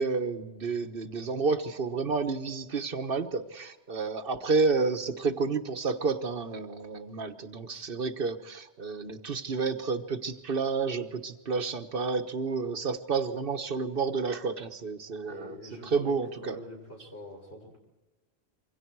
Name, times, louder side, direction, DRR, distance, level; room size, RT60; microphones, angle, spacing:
voice 1, 0.0-15.5 15.9-16.6, right 4 dB, 60° right, 9 dB, 1.4 m, -30 dB
voice 2, 15.2-16.2 16.4-17.8, equal, 80° left, 0 dB, 6.6 m, -44 dB
27.0 x 24.0 x 4.7 m, 1.0 s
omnidirectional pair, 1.1 m